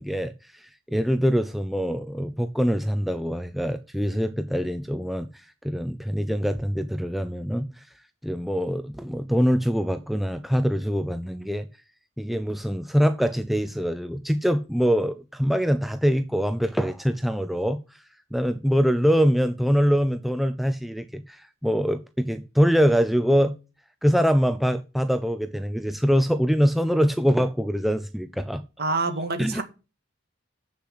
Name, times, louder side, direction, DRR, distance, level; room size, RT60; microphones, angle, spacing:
voice 1, 0.0-7.9 8.2-11.7 12.2-18.0 18.3-23.5 24.0-28.6 29.4-29.6, equal, ahead, 0.4 m, -24 dB
voice 2, 28.8-29.6, right 3 dB, 50° right, 2.0 m, -26 dB
7.8 x 6.9 x 7.7 m
head